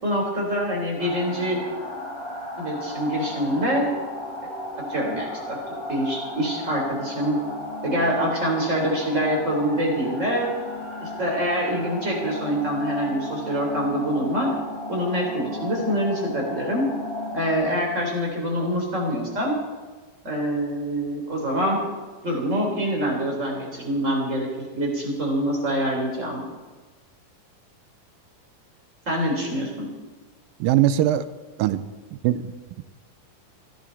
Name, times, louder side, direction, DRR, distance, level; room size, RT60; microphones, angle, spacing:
voice 1, 0.0-1.6 2.6-3.9 4.9-5.6 5.9-7.4 7.8-10.5 11.0-14.5 14.9-16.9 17.3-19.6 20.2-21.8 22.2-26.5 29.1-29.9, equal, 20° right, -1 dB, 4.2 m, -25 dB
sound 1, 1.0-17.5, left 1 dB, 15° left, 5.2 m, -34 dB
voice 2, 30.6-31.3 31.6-31.8 32.2-32.4, right 12 dB, 90° right, 13 dB, 2.4 m, -20 dB
29.5 x 10.5 x 4.1 m, 1.3 s
omnidirectional pair, 4.0 m